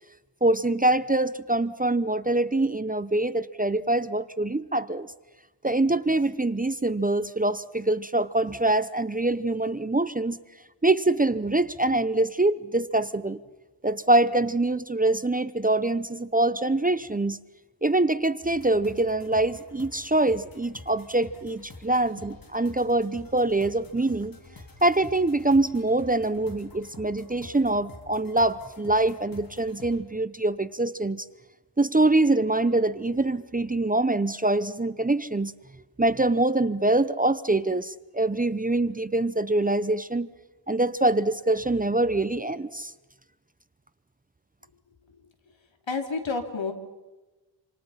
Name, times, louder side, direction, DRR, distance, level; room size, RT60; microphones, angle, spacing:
voice 1, 0.4-5.1 5.6-10.4 10.8-13.4 13.8-17.4 17.8-24.4 24.8-31.3 31.8-35.5 36.0-40.3 40.7-42.9, right 2 dB, 20° right, 14 dB, 0.8 m, -24 dB
sound 1, 18.4-30.0, left 2 dB, 50° left, 3.8 m, -48 dB
voice 2, 45.9-46.7, left 4 dB, 80° left, 5 dB, 3.4 m, -29 dB
27.5 x 27.0 x 5.7 m, 1.1 s
wide cardioid pair, 95°, 45 cm